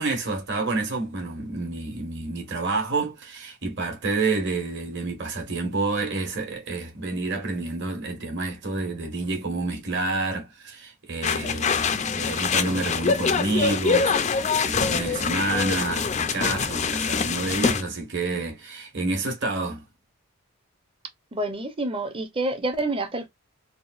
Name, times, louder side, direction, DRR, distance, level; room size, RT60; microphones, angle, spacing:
voice 1, 0.0-19.8, right 3 dB, 50° right, 1.4 m, -29 dB
sound 1, 11.2-17.8, left 5 dB, 30° left, 0.3 m, -24 dB
voice 2, 21.3-23.3, right 2 dB, 25° right, 0.6 m, -28 dB
3.5 x 2.4 x 2.4 m
head